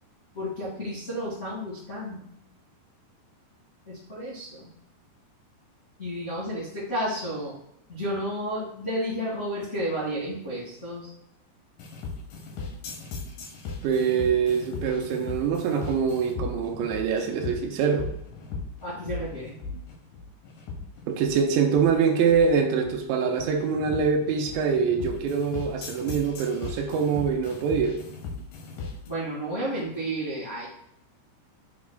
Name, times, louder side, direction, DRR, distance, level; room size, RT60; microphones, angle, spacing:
voice 1, 0.3-2.4 3.8-4.7 6.0-7.5 7.9-11.1 18.8-19.5 29.0-30.7, equal, 35° left, -8 dB, 1.1 m, -32 dB
sound 1, 11.8-29.1, left 4 dB, 70° left, 2.1 m, -37 dB
voice 2, 13.8-18.1 21.1-28.0, right 6 dB, 85° right, 3 dB, 3.0 m, -24 dB
7.3 x 6.4 x 2.4 m, 0.76 s
omnidirectional pair, 5.2 m